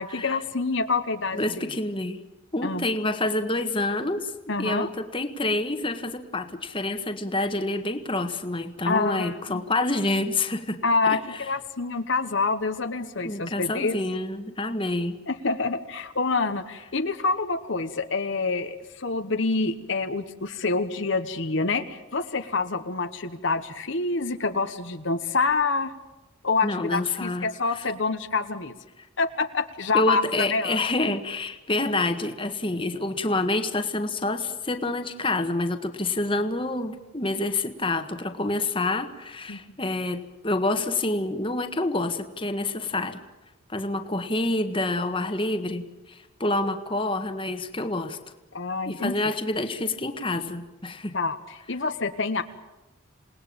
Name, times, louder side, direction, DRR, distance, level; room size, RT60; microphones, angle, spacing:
voice 1, 0.0-1.7 2.6-2.8 4.5-4.9 8.9-9.6 10.8-13.9 15.3-25.9 26.4-28.7 29.2-30.2 30.5-30.8 39.5-39.6 48.5-49.1 51.1-52.4, left 3 dB, 60° left, 8 dB, 1.2 m, -27 dB
voice 2, 1.3-2.2 2.5-4.3 4.6-11.4 13.2-15.2 26.6-27.5 27.7-27.9 29.9-43.2 43.7-48.2 48.8-51.1, left 2 dB, 25° left, 7 dB, 1.5 m, -27 dB
28.0 x 19.0 x 8.9 m, 1.1 s
head